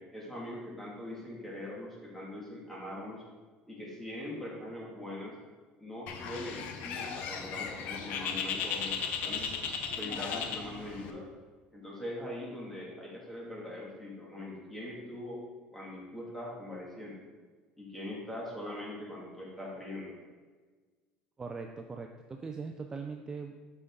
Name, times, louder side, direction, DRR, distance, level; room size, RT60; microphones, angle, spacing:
voice 1, 0.0-3.2 3.7-5.4 5.8-9.6 9.9-11.3 11.7-15.4 15.7-17.2 17.8-20.2, left 1 dB, 5° left, -4 dB, 2.2 m, -42 dB
Bird, 6.1-11.1, left 6 dB, 65° left, 0.8 m, -36 dB
voice 2, 21.4-23.6, right 4 dB, 20° right, 4 dB, 0.5 m, -40 dB
8.4 x 5.4 x 3.7 m, 1.4 s
cardioid pair, 120°, 3 cm